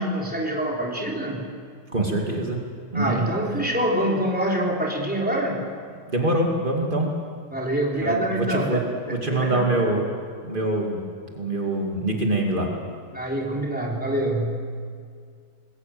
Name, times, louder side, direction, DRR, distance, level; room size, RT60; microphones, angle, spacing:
voice 1, 0.0-1.5 2.9-5.7 7.5-8.9 9.3-9.7 13.1-14.7, right 1 dB, ahead, -3 dB, 2.9 m, -25 dB
voice 2, 1.9-2.6 2.9-3.3 6.1-7.1 8.0-8.8 9.1-10.1 10.4-11.0 11.3-12.7, right 2 dB, 90° right, 0 dB, 0.4 m, -24 dB
27.5 x 21.0 x 7.8 m, 2.1 s
omnidirectional pair, 5.2 m